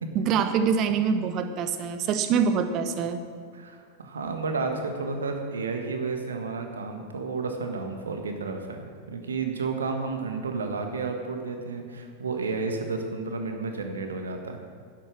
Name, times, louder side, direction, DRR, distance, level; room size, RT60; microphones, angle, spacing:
voice 1, 0.1-3.2, right 6 dB, 35° right, 9 dB, 1.1 m, -25 dB
voice 2, 3.5-14.6, right 4 dB, 70° right, 4 dB, 1.6 m, -31 dB
11.5 x 11.0 x 6.3 m, 2.1 s
figure-of-eight pair, 90°, 0 cm